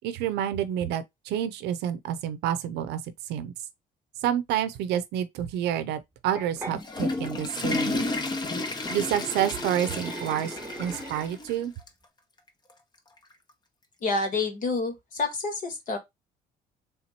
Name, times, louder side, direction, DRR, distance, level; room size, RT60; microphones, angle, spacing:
voice 1, 0.0-3.0 3.3-3.5 4.2-8.0 8.9-11.7, right 10 dB, 85° right, 0.6 m, -29 dB
sound 1, 6.4-6.8 8.5-11.5, right 2 dB, 15° right, 1.1 m, -40 dB
Water / Toilet flush, 6.6-11.6 11.9-12.0 12.7-12.8 14.1-14.2, left 2 dB, 25° left, 0.8 m, -32 dB
voice 2, 14.0-16.0, left 3 dB, 50° left, 1.5 m, -28 dB
3.5 x 2.9 x 4.2 m
cardioid pair, 110°, 17 cm